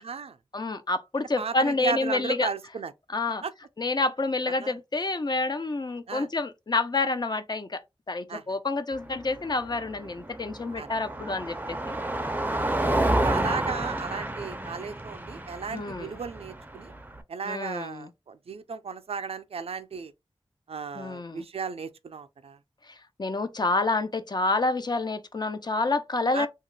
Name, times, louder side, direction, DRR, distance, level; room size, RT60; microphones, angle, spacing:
voice 1, 0.0-0.4 1.4-2.9 3.4-3.5 4.6-4.8 6.1-6.3 8.3-8.4 10.8-10.9 12.5-12.6 13.0-16.9 17.3-20.1 20.7-22.6 26.3-26.5, right 5 dB, 80° right, 0.4 m, -35 dB
voice 2, 0.5-2.5 3.1-3.4 3.8-7.8 8.1-12.0 12.8-13.2 15.7-16.2 17.4-18.1 20.9-21.4 22.9-26.5, left 3 dB, 45° left, 0.5 m, -28 dB
Car passing by, 8.9-17.2, right 1 dB, 15° right, 0.4 m, -30 dB
2.8 x 2.3 x 3.1 m
wide cardioid pair, 70°, 10 cm